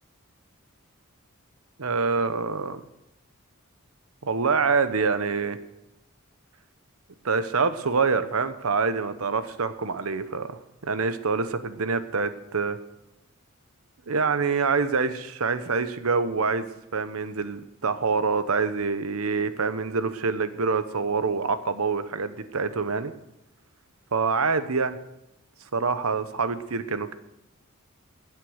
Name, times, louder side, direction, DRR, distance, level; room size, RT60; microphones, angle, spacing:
voice 1, 1.8-2.8 4.2-5.6 7.2-12.8 14.1-16.6 16.9-23.1 24.1-24.9 25.7-27.1, right 4 dB, 85° right, 12 dB, 0.9 m, -26 dB
15.5 x 8.2 x 6.5 m, 0.88 s
head